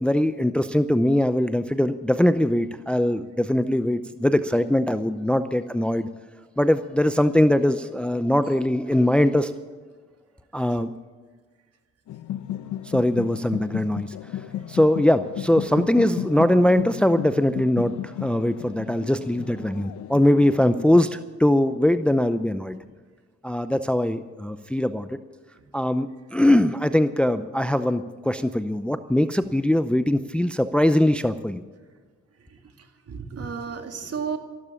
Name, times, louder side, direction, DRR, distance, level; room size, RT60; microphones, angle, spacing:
voice 1, 0.0-6.1 6.6-9.5 10.5-10.9 12.8-14.1 14.7-22.8 23.4-25.2 25.7-31.6, left 1 dB, 5° left, 11 dB, 0.6 m, -21 dB
sound 1, 12.1-21.2, left 11 dB, 70° left, 0.8 m, -35 dB
voice 2, 32.4-34.4, right 6 dB, 55° right, 6 dB, 2.4 m, -34 dB
14.5 x 12.5 x 7.1 m, 1.4 s
cardioid pair, 90°, 30 cm